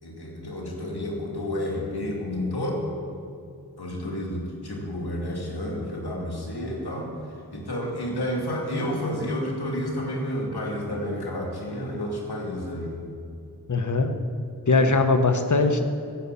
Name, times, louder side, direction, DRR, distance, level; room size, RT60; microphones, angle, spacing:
voice 1, 0.0-2.9 3.8-7.1 7.5-12.9 14.7-14.9, left 1 dB, 75° left, -2 dB, 2.6 m, -30 dB
voice 2, 13.7-14.1 14.7-15.9, left 3 dB, 50° left, 7 dB, 1.2 m, -21 dB
14.0 x 5.6 x 8.4 m, 2.4 s
cardioid pair, 45°, 38 cm